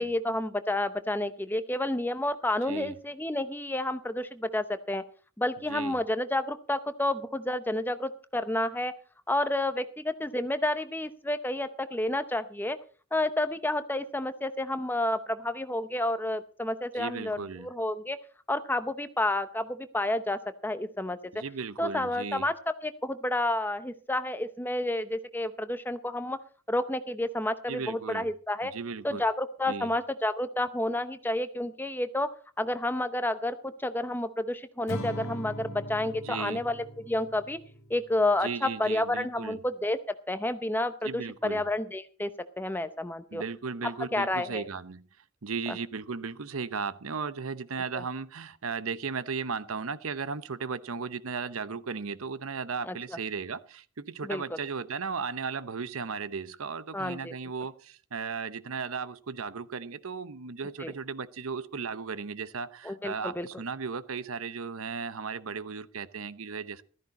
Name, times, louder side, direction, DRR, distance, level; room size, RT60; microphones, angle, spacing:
voice 1, 0.0-5.0 5.4-8.9 9.3-12.8 13.1-18.2 18.5-21.2 21.8-22.5 22.8-26.4 26.7-28.7 29.0-32.3 32.6-33.6 33.8-37.6 37.9-40.0 40.3-42.3 42.6-43.4 43.8-44.6 52.9-53.0 54.2-54.4 56.9-57.3 60.8-60.9 62.8-63.5, left 1 dB, 10° left, 0.7 m, -30 dB
voice 2, 5.7-6.0 16.9-17.7 21.3-22.5 27.7-28.3 28.6-29.2 29.7-29.9 36.2-36.6 38.4-39.6 41.0-41.6 43.3-45.0 45.4-66.8, right 5 dB, 80° right, 0.8 m, -36 dB
Acoustic guitar / Strum, 34.9-38.2, equal, 80° left, 1.9 m, -40 dB
14.5 x 13.5 x 4.2 m
head